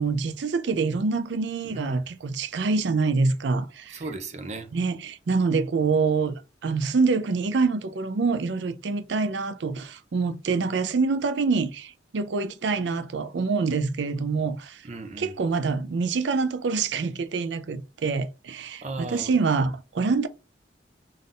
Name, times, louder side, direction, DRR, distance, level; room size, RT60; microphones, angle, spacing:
voice 1, 0.0-4.0 4.7-6.3 6.6-14.8 15.2-20.3, right 4 dB, 80° right, 0.5 m, -26 dB
voice 2, 1.6-2.1 3.9-4.7 14.8-15.3 18.8-19.3, right 3 dB, 40° right, 0.6 m, -36 dB
3.7 x 2.6 x 3.8 m
head